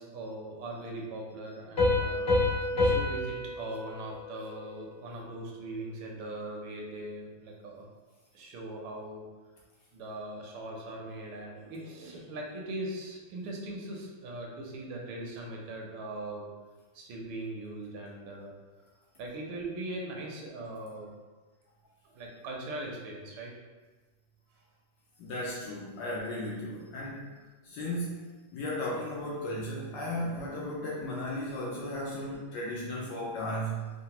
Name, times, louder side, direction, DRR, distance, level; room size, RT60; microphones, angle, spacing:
voice 1, 0.0-7.9 8.3-9.2 9.9-16.5 16.9-18.5 19.2-21.1 22.0-23.5 30.1-30.2 32.1-32.2, right 2 dB, 80° right, -1 dB, 1.4 m, -40 dB
Piano, 1.8-5.2, left 2 dB, 30° left, 0.9 m, -29 dB
voice 2, 25.2-27.3 27.6-33.9, left 1 dB, 75° left, -4 dB, 1.1 m, -35 dB
3.7 x 2.1 x 2.8 m, 1.3 s
omnidirectional pair, 2.3 m